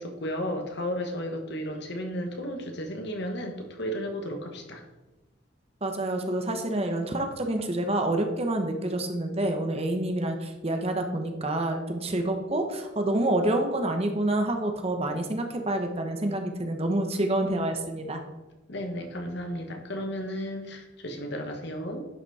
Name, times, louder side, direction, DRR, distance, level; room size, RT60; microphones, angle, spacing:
voice 1, 0.0-4.8 18.7-22.1, equal, 60° left, 4 dB, 1.4 m, -33 dB
voice 2, 5.8-18.2, right 1 dB, 30° right, 5 dB, 1.0 m, -28 dB
11.0 x 6.0 x 4.2 m, 1.1 s
head